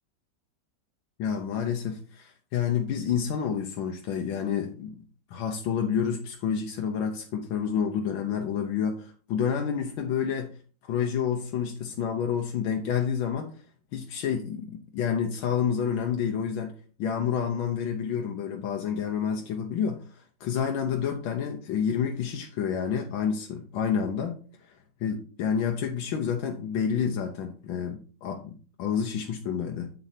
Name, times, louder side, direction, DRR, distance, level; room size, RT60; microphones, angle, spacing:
voice 1, 1.2-5.0 5.3-10.5 10.9-13.5 13.9-16.7 17.0-24.7 25.0-29.9, left 7 dB, 85° left, 3 dB, 1.6 m, -29 dB
8.1 x 7.7 x 2.8 m, 0.39 s
omnidirectional pair, 2.1 m